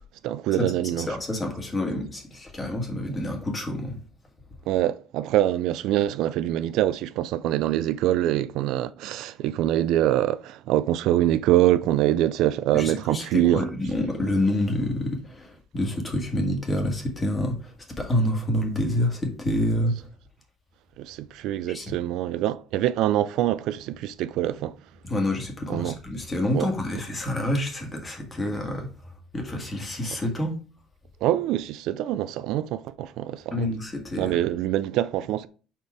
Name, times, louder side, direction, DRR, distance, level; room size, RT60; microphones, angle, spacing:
voice 1, 0.2-1.2 4.7-13.7 21.0-24.8 25.7-26.0 26.5-26.7 31.2-33.7 34.2-35.5, right 13 dB, 75° right, 0.3 m, -24 dB
voice 2, 1.1-4.0 12.7-20.1 21.7-21.8 25.1-28.9 29.3-30.5 33.5-34.4, left 1 dB, 20° left, 1.6 m, -27 dB
5.0 x 4.4 x 4.7 m
cardioid pair, 130°, 0 cm